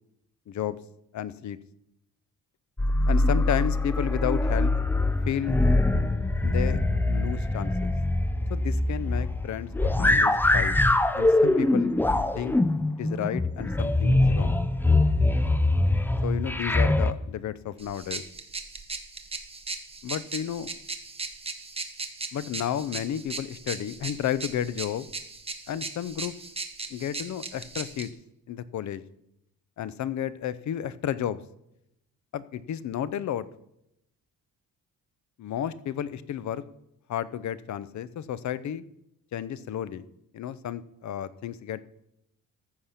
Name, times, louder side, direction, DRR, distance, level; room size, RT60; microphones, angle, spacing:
voice 1, 0.5-0.8 1.1-1.6 3.1-4.7 5.3-5.6 6.4-6.8 7.1-7.9 8.5-10.7 11.1-11.9 12.3-12.6 13.0-14.6 16.2-18.2 20.0-20.7 22.3-25.1 25.7-26.3 26.9-28.1 28.5-29.0 29.8-31.4 32.3-33.5 35.4-36.6 37.1-38.8 39.3-40.1 40.3-41.8, left 10 dB, 55° left, 16 dB, 0.6 m, -32 dB
sound 1, 2.8-17.1, left 2 dB, 5° left, 0.4 m, -23 dB
sound 2, 17.8-28.1, right 3 dB, 15° right, 0.9 m, -38 dB
14.5 x 6.5 x 5.7 m, 0.83 s
wide cardioid pair, 155°, 35 cm